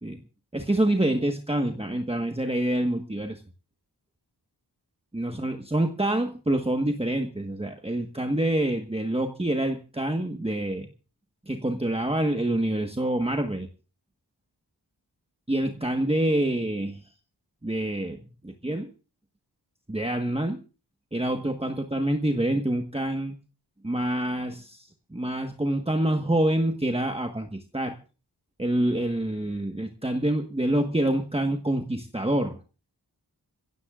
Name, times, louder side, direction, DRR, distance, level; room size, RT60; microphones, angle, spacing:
voice 1, 0.5-3.4 5.1-10.9 11.5-13.7 15.5-17.0 17.6-18.2 18.4-18.9 19.9-20.6 21.1-23.3 23.8-28.0 28.6-32.6, right 1 dB, 15° right, 4 dB, 1.4 m, -26 dB
26.5 x 16.5 x 2.5 m, 0.34 s
wide cardioid pair, 55°, 41 cm